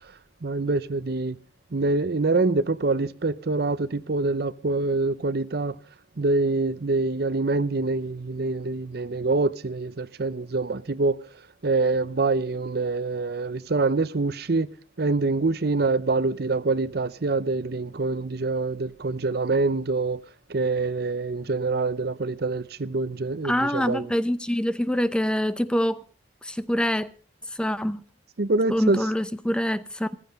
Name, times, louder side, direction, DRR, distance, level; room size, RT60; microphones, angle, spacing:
voice 1, 0.4-1.4 1.7-5.8 6.2-11.2 11.6-14.7 15.0-20.2 20.5-24.1 28.4-29.0, right 3 dB, 60° right, 0.7 m, -25 dB
voice 2, 23.4-26.0 26.4-27.1 27.6-28.0 28.7-30.2, equal, 5° left, 0.6 m, -25 dB
15.0 x 15.0 x 5.2 m
head